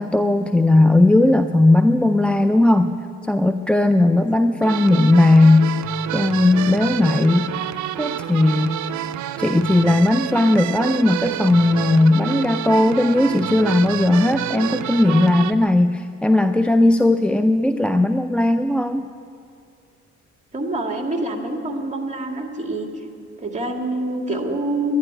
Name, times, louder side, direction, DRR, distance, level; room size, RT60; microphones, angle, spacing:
voice 1, 0.0-2.9 3.3-5.7 6.1-7.4 8.0-8.8 9.4-19.1, left 2 dB, 5° left, 8 dB, 0.4 m, -17 dB
sound 1, 4.6-15.5, right 12 dB, 70° right, 0.6 m, -28 dB
voice 2, 20.5-22.9 23.4-25.0, right 2 dB, 25° right, 3 dB, 2.1 m, -26 dB
11.5 x 11.5 x 9.8 m, 2.4 s
cardioid pair, 90°, 30 cm